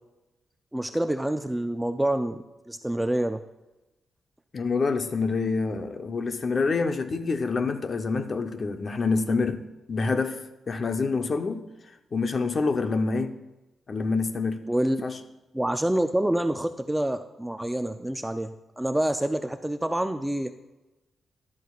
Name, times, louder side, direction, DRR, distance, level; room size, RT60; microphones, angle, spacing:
voice 1, 0.7-2.4 2.7-3.4 14.7-15.0 15.5-20.5, right 1 dB, 5° right, 8 dB, 0.4 m, -27 dB
voice 2, 4.5-9.6 9.9-10.4 10.7-11.6 12.1-13.3 13.9-14.6 15.0-15.2, left 4 dB, 35° left, 8 dB, 0.7 m, -26 dB
12.5 x 12.0 x 2.4 m, 1.0 s
wide cardioid pair, 150°, 0 cm